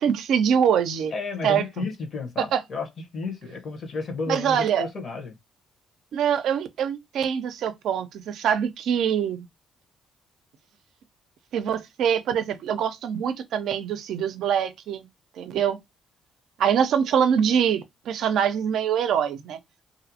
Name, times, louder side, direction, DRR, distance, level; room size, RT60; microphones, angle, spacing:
voice 1, 0.0-1.1 1.4-1.6 2.4-2.6 4.3-4.9 6.1-9.5 11.5-15.1 15.4-15.8 16.6-19.6, right 8 dB, 75° right, 0.4 m, -24 dB
voice 2, 1.1-5.3, left 4 dB, 50° left, 0.9 m, -32 dB
2.6 x 2.0 x 2.7 m
cardioid pair, 85°, 0 cm